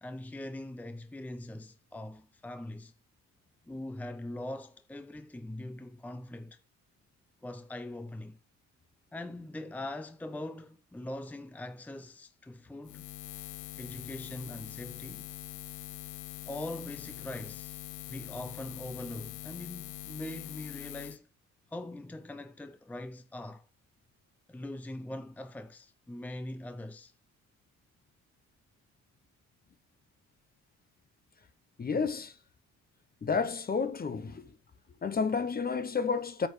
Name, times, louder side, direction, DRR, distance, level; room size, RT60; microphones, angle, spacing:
voice 1, 0.0-2.9 3.7-6.6 7.4-8.4 9.1-13.1 13.8-15.3 16.5-21.3 21.7-23.7 24.5-27.1, left 1 dB, 5° left, 0.6 m, -42 dB
Buzz, 12.8-21.2, left 16 dB, 80° left, 0.6 m, -43 dB
voice 2, 31.8-32.3 33.2-34.5 35.0-36.5, left 5 dB, 30° left, 0.9 m, -31 dB
9.0 x 6.5 x 3.3 m
cardioid pair, 90°, 30 cm